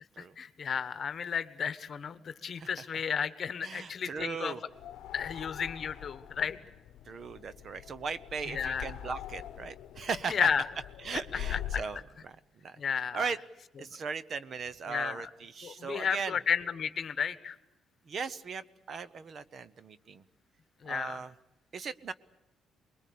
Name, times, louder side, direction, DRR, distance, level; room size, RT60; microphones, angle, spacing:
voice 1, 0.2-4.5 5.1-6.6 8.5-8.9 10.3-10.6 11.5-11.8 12.8-13.2 14.9-15.3 15.6-17.5 20.8-21.2, left 7 dB, 45° left, 12 dB, 1.3 m, -33 dB
voice 2, 3.6-4.6 7.1-10.5 11.0-12.0 12.2-12.4 12.6-12.8 13.1-13.4 13.8-16.4 18.1-20.2 20.8-21.3 21.7-22.1, right 5 dB, 45° right, 15 dB, 0.8 m, -38 dB
sound 1, 4.7-12.0, left 11 dB, 80° left, 0.8 m, -43 dB
24.5 x 21.5 x 8.5 m, 0.92 s
cardioid pair, 135°, 0 cm